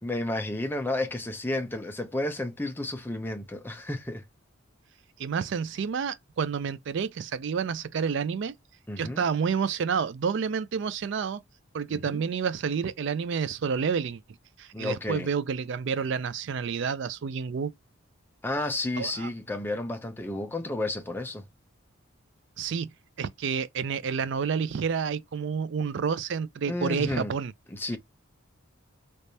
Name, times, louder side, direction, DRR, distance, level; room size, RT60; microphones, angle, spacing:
voice 1, 0.0-4.2 8.9-9.2 11.9-12.2 14.7-15.3 18.4-21.4 26.7-27.3 27.7-28.0, left 2 dB, 10° left, 0.5 m, -32 dB
voice 2, 5.2-8.5 9.0-11.4 11.7-14.2 14.6-17.7 19.0-19.3 22.6-22.9 23.2-27.5, right 6 dB, 55° right, 0.3 m, -29 dB
3.3 x 3.2 x 2.7 m
head